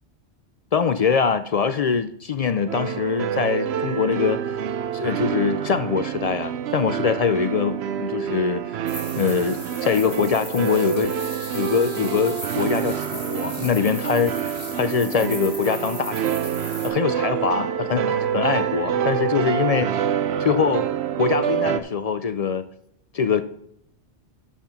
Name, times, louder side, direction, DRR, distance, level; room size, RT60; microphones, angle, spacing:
voice 1, 0.7-4.6 4.9-8.9 9.2-11.1 11.5-16.3 16.8-19.9 20.4-20.9 21.2-22.7 23.1-23.4, left 6 dB, 65° left, 0.3 m, -23 dB
sound 1, 2.7-21.8, right 9 dB, 70° right, 0.9 m, -27 dB
sound 2, 8.9-16.9, left 1 dB, 30° left, 3.0 m, -37 dB
13.0 x 4.3 x 5.8 m
omnidirectional pair, 1.2 m